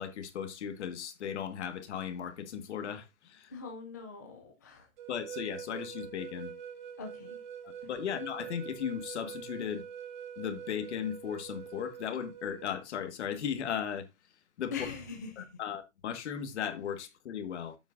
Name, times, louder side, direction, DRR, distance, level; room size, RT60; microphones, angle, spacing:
voice 1, 0.0-3.5 5.1-6.5 7.8-9.8 10.4-14.1 14.6-14.7 15.4-17.8, left 8 dB, 55° left, 1.7 m, -36 dB
voice 2, 3.5-4.9 7.0-7.4 7.8-7.9 14.7-15.6, left 5 dB, 15° left, 0.4 m, -42 dB
sound 1, 5.0-12.8, right 8 dB, 35° right, 1.3 m, -44 dB
9.2 x 7.6 x 2.6 m
hypercardioid pair, 165°, 40 cm